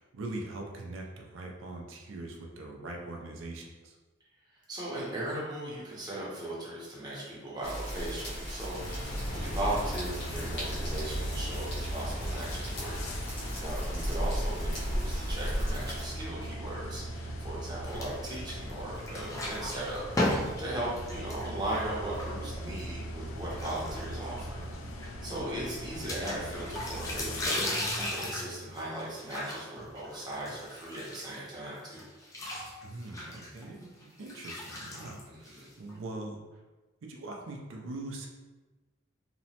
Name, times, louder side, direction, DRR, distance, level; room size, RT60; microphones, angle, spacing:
voice 1, 0.0-4.0 13.9-14.2 20.8-21.0 25.3-25.7 32.8-36.4 37.0-38.3, right 2 dB, 85° right, 1 dB, 0.4 m, -42 dB
voice 2, 4.7-13.0 13.6-24.6 25.0-32.0 35.3-35.7, right 1 dB, 20° right, -6 dB, 0.7 m, -38 dB
sound 1, 7.6-16.1, equal, 55° left, 0.8 m, -35 dB
sound 2, 8.8-27.5, equal, 90° left, 0.4 m, -39 dB
sound 3, 17.9-18.7 19.0-22.8 23.4-24.4 24.7-24.8 25.0-25.1 26.1-31.6 31.9-35.9, left 1 dB, 15° left, 0.3 m, -36 dB
2.9 x 2.1 x 2.8 m, 1.2 s
head